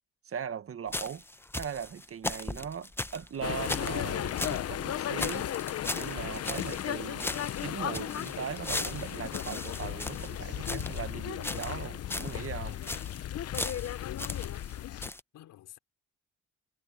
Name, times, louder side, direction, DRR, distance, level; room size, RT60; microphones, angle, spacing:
voice 1, 0.3-1.2 1.5-5.5 5.9-7.3 7.6-12.8 13.1-13.3, right 8 dB, 50° right, 1.6 m, -39 dB
sound 1, 0.9-4.6 4.9-5.0 5.2-6.9 7.2-11.0 11.4-11.8 12.1-12.4 12.7-13.2 13.5-14.7 15.0-15.2, left 2 dB, 10° left, 0.7 m, -37 dB
sound 2, 3.4-15.1, left 11 dB, 55° left, 0.7 m, -35 dB
voice 2, 14.0-15.8, left 13 dB, 85° left, 5.3 m, -50 dB
cardioid pair, 90°, 30 cm